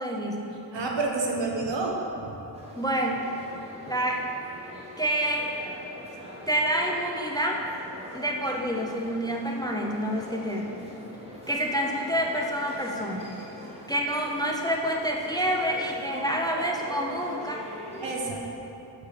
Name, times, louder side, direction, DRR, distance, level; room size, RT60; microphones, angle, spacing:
voice 1, 0.0-0.6 2.8-3.2 3.9-4.2 5.0-5.5 6.5-7.6 8.1-10.7 11.5-13.3 13.9-17.6, equal, 10° left, 0 dB, 0.5 m, -28 dB
voice 2, 0.7-2.3 18.0-18.4, right 3 dB, 75° right, 0 dB, 1.1 m, -29 dB
sound 1, 2.5-18.1, equal, 15° right, 1.2 m, -43 dB
6.7 x 4.6 x 5.0 m, 2.9 s
wide cardioid pair, 100°, 44 cm